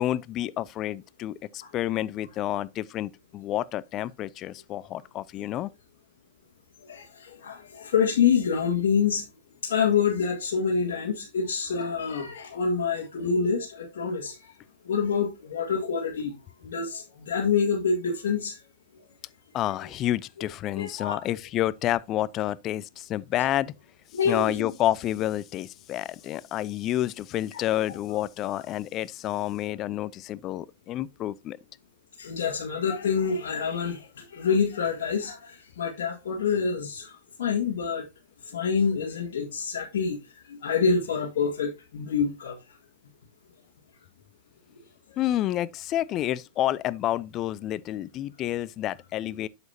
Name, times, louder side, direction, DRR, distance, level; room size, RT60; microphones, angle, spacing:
voice 1, 0.0-5.7 19.5-23.7 24.2-31.6 45.2-49.5, left 13 dB, 40° left, 0.5 m, -29 dB
voice 2, 6.8-9.3 9.6-14.5 14.9-16.4 16.6-18.6 19.0-19.1 20.8-21.2 24.1-24.7 27.5-28.0 32.2-38.0 38.4-42.6, left 6 dB, 75° left, 1.8 m, -27 dB
7.9 x 7.2 x 2.8 m
hypercardioid pair, 110°, 0 cm